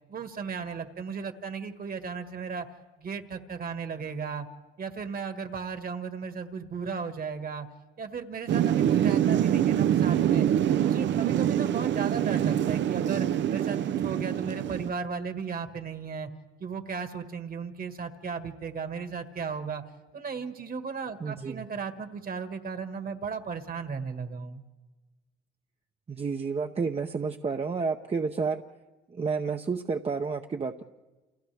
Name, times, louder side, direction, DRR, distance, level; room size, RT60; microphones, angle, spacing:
voice 1, 0.1-2.7 3.0-4.5 4.8-7.7 8.0-10.5 10.7-16.3 16.6-19.8 20.1-24.6, right 5 dB, 45° right, 8 dB, 1.7 m, -35 dB
Thunder / Rain, 8.5-14.9, right 10 dB, 65° right, 0.6 m, -25 dB
voice 2, 21.2-21.7 26.1-28.6 29.1-30.8, right 5 dB, 30° right, 4 dB, 0.8 m, -30 dB
30.0 x 28.5 x 3.4 m, 1.2 s
cardioid pair, 90°, 20 cm